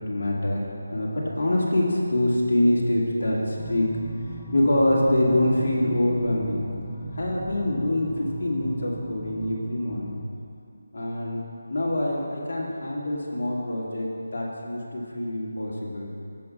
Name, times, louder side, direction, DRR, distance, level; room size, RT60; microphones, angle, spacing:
voice 1, 0.1-0.6 0.9-3.9 4.5-6.7 7.2-10.2 10.9-11.4 11.7-16.1, left 1 dB, 65° left, -4 dB, 1.9 m, -25 dB
sound 1, 3.6-10.2, right 2 dB, 10° left, 0.7 m, -38 dB
16.5 x 5.8 x 2.3 m, 2.5 s
figure-of-eight pair, 165°, 0 cm